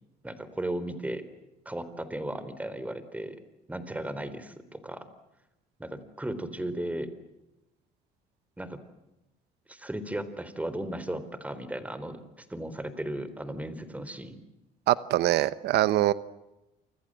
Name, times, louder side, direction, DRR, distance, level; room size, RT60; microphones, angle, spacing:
voice 1, 0.2-1.2 1.7-3.4 3.7-5.1 5.8-7.1 8.6-8.8 9.7-14.4, right 1 dB, 10° right, 13 dB, 3.9 m, -35 dB
voice 2, 14.9-16.1, right 15 dB, 80° right, 16 dB, 1.0 m, -23 dB
29.0 x 26.5 x 7.7 m, 0.95 s
cardioid pair, 110°, 17 cm